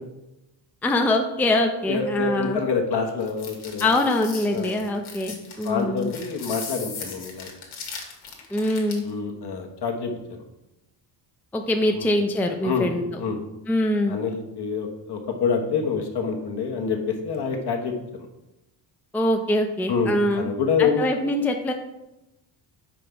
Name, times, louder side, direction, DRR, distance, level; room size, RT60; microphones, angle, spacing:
voice 1, 0.8-2.6 3.8-6.1 8.5-9.0 11.5-13.0 13.7-14.2 19.1-20.5 20.8-21.7, left 1 dB, 5° left, 4 dB, 0.5 m, -23 dB
voice 2, 1.8-4.1 4.5-4.7 5.6-7.5 9.0-10.1 11.9-12.1 12.6-12.9 13.2-13.4 14.1-17.9 19.9-21.0, left 5 dB, 55° left, 2 dB, 1.3 m, -26 dB
sound 1, 3.2-9.1, left 5 dB, 75° left, 1.7 m, -38 dB
5.1 x 4.6 x 5.3 m, 0.95 s
cardioid pair, 85°, 48 cm